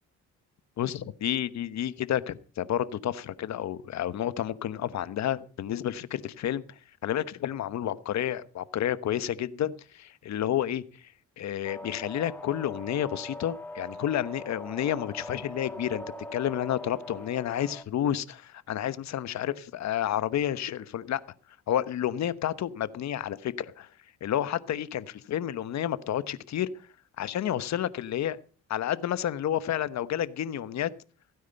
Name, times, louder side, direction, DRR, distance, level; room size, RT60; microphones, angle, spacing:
voice 1, 0.8-6.6 7.0-11.1 11.4-16.0 16.3-21.2 21.7-23.9 24.2-26.7 27.2-28.4 28.7-30.9, left 11 dB, 65° left, 1.0 m, -30 dB
sound 1, 11.6-17.8, left 1 dB, 5° left, 1.8 m, -42 dB
16.0 x 9.5 x 5.5 m
cardioid pair, 90°, 30 cm